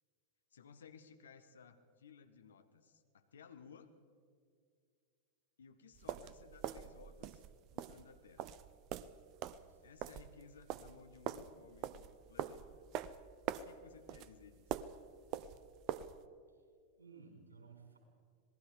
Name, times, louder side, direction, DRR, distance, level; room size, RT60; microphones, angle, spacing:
voice 1, 0.5-3.9 5.6-7.5 7.7-8.5 9.8-12.8 13.6-14.7, left 6 dB, 65° left, 9 dB, 1.5 m, -59 dB
sound 1, 5.9-16.2, right 11 dB, 40° right, 0.7 m, -44 dB
voice 2, 9.5-9.9 16.5-16.7 17.0-18.0, right 5 dB, 75° right, 2 dB, 5.4 m, -59 dB
27.0 x 19.0 x 5.1 m, 2.2 s
figure-of-eight pair, 90°, 0 cm